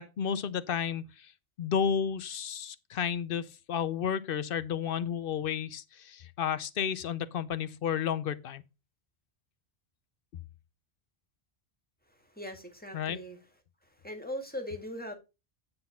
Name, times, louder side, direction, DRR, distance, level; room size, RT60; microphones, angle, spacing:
voice 1, 0.0-1.3 1.6-8.6 12.9-13.2, left 8 dB, 65° left, 0.8 m, -32 dB
voice 2, 12.1-13.4 13.8-15.1, equal, 10° left, 1.9 m, -40 dB
9.6 x 4.0 x 5.6 m
omnidirectional pair, 1.1 m